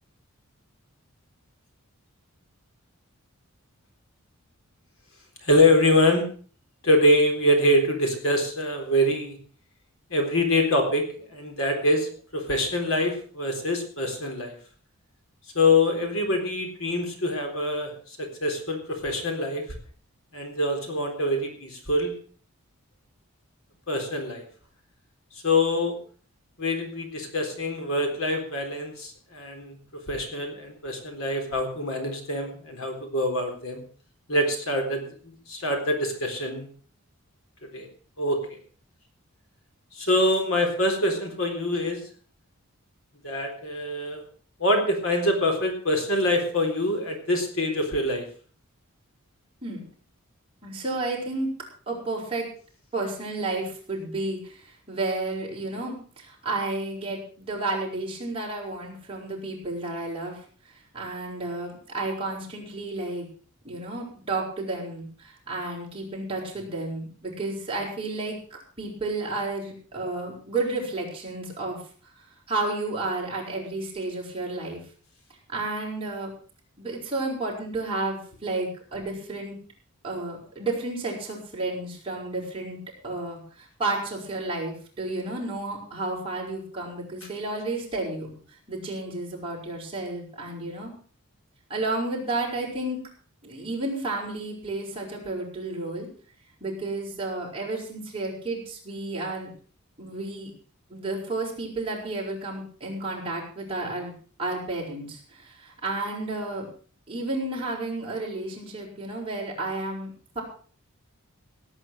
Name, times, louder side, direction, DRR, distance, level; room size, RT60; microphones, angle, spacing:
voice 1, 5.4-6.2 6.8-9.4 10.1-14.6 15.5-17.9 18.2-19.6 20.3-22.1 23.9-24.4 25.4-25.9 26.6-29.8 30.1-33.8 34.3-36.7 37.7-37.9 38.2-38.4 39.9-42.0 43.2-44.2 44.6-48.2, left 1 dB, 65° left, 3 dB, 3.9 m, -24 dB
voice 2, 50.6-51.5 51.9-52.5 52.9-54.5 54.9-60.3 60.9-63.2 63.6-68.4 68.8-71.8 72.5-74.8 75.5-76.3 76.8-79.5 80.0-82.8 83.0-83.4 83.8-88.3 88.7-90.9 91.7-93.0 93.4-96.1 96.6-99.5 100.0-100.5 100.9-104.1 104.4-105.2 105.6-106.7 107.1-110.4, right 2 dB, 25° right, -3 dB, 5.8 m, -31 dB
17.5 x 9.0 x 6.4 m, 0.43 s
head